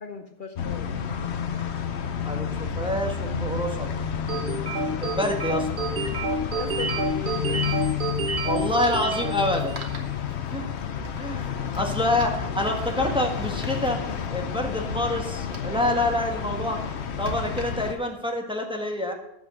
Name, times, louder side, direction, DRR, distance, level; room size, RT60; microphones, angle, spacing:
voice 1, 0.0-0.9 6.6-7.7 11.8-11.9, left 4 dB, 55° left, 5 dB, 0.9 m, -37 dB
sound 1, 0.6-17.9, left 7 dB, 85° left, 1.1 m, -30 dB
voice 2, 2.2-3.9 5.0-5.7 8.4-10.1 10.5-10.7 11.2-14.0 14.3-16.8 17.2-19.1, left 1 dB, 5° right, 2 dB, 1.4 m, -27 dB
sound 2, 4.3-10.0, right 2 dB, 50° right, 1.3 m, -29 dB
sound 3, 5.0-5.1 5.3-5.5 7.0-18.2, right 2 dB, 75° right, 1.9 m, -45 dB
14.0 x 5.5 x 6.3 m, 0.83 s
omnidirectional pair, 1.1 m